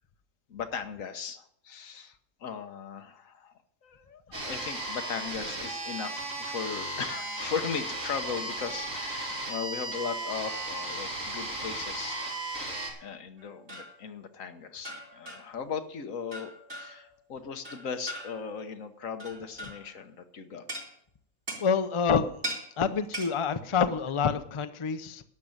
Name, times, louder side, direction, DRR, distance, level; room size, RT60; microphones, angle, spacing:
voice 1, 0.5-3.5 3.8-12.2 13.0-20.6, left 6 dB, 80° left, 8 dB, 1.5 m, -38 dB
sound 1, 4.3-12.9, right 1 dB, 80° right, 4.2 m, -35 dB
sound 2, 13.4-14.0 14.8-15.6 16.3-17.1 17.6-18.5 19.2-19.9 20.7-20.9 21.5-21.7 22.4-22.7 23.1-23.4, right 1 dB, 55° right, 4.1 m, -39 dB
voice 2, 21.6-22.3 22.8-25.2, left 6 dB, 30° left, 10 dB, 0.6 m, -27 dB
12.0 x 6.6 x 8.9 m, 0.68 s
omnidirectional pair, 1.4 m